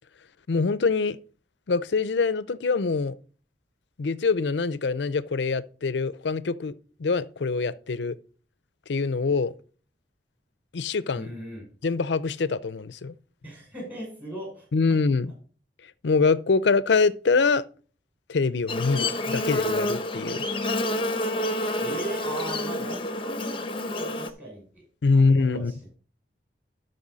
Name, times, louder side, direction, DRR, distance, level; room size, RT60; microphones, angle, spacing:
voice 1, 0.5-1.2 1.7-3.1 4.0-6.7 7.0-8.2 8.9-9.5 10.7-11.3 11.8-13.1 14.7-15.3 16.0-17.6 18.3-20.4 25.0-25.7, left 4 dB, 85° left, 0.5 m, -24 dB
voice 2, 11.1-11.6 13.4-14.7 21.8-24.8 25.1-25.2 25.5-25.7, right 1 dB, 10° right, 5.9 m, -38 dB
Buzz, 18.7-24.3, left 1 dB, 30° left, 0.8 m, -28 dB
13.0 x 5.5 x 4.0 m
head